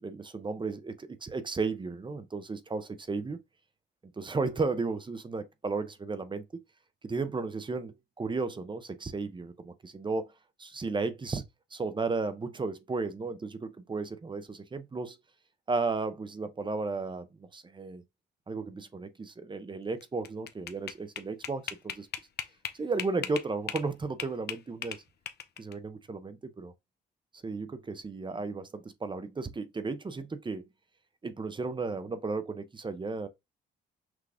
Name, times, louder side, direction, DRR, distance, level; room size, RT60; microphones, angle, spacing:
voice 1, 0.0-3.4 4.2-6.4 7.0-10.3 10.6-11.4 11.7-15.2 15.7-18.0 18.5-22.1 22.7-25.0 25.6-26.7 27.4-30.7 31.2-33.3, right 3 dB, 25° right, 0.7 m, -34 dB
sound 1, 20.0-23.9 24.2-25.7, left 8 dB, 55° left, 0.8 m, -37 dB
6.1 x 2.3 x 3.5 m
cardioid pair, 90°, 20 cm